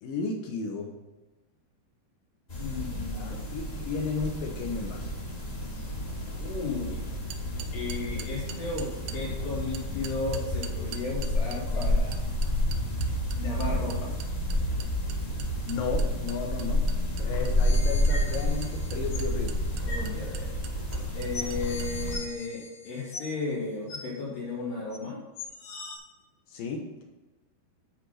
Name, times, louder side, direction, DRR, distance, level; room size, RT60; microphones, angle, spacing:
voice 1, 0.0-0.9 2.8-5.1 15.6-16.9 17.2-19.6 26.5-27.0, left 4 dB, 70° left, 1 dB, 2.5 m, -34 dB
sound 1, 2.5-22.1, left 1 dB, 25° left, 1.3 m, -30 dB
voice 2, 2.6-3.5 6.4-7.1 7.7-12.3 13.4-14.1 19.8-20.5 21.2-25.2, left 3 dB, 90° left, -9 dB, 4.2 m, -34 dB
sound 2, 7.3-9.2 9.7-22.0, right 10 dB, 80° right, 2.4 m, -44 dB
sound 3, 17.4-19.3 19.9-20.1 20.9-21.0 21.3-23.5 23.9-24.0 24.9-25.0 25.3-26.0, left 3 dB, 55° left, 1.8 m, -40 dB
10.5 x 4.4 x 6.4 m, 1.2 s
omnidirectional pair, 4.7 m